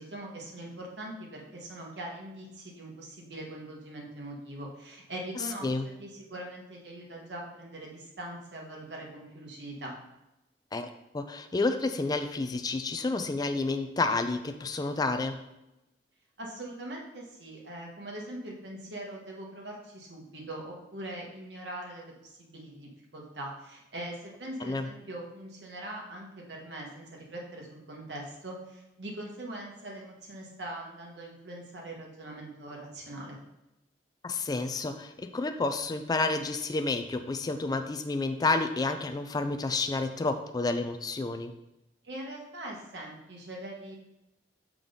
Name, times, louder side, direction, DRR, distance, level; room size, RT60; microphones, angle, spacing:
voice 1, 0.0-5.7 6.0-10.0 16.4-33.4 42.0-43.9, right 1 dB, 75° right, -1 dB, 1.5 m, -42 dB
voice 2, 10.7-15.4 24.6-24.9 34.2-41.5, left 3 dB, 20° left, 7 dB, 0.4 m, -30 dB
6.1 x 3.7 x 5.1 m, 0.94 s
head